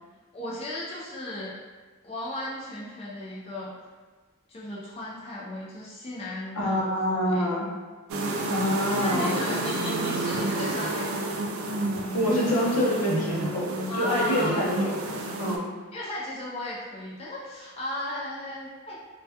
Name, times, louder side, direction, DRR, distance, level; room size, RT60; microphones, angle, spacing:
voice 1, 0.3-1.6 2.0-3.7 4.5-7.5 8.9-11.3 13.9-14.8 15.9-19.0, left 1 dB, 25° left, -6 dB, 0.3 m, -35 dB
voice 2, 6.6-7.7 8.5-9.7 12.1-15.1 15.4-15.7, left 1 dB, 80° left, -4 dB, 0.6 m, -26 dB
sound 1, 8.1-15.6, right 2 dB, 65° right, 0.3 m, -30 dB
2.1 x 2.1 x 2.7 m, 1.3 s
head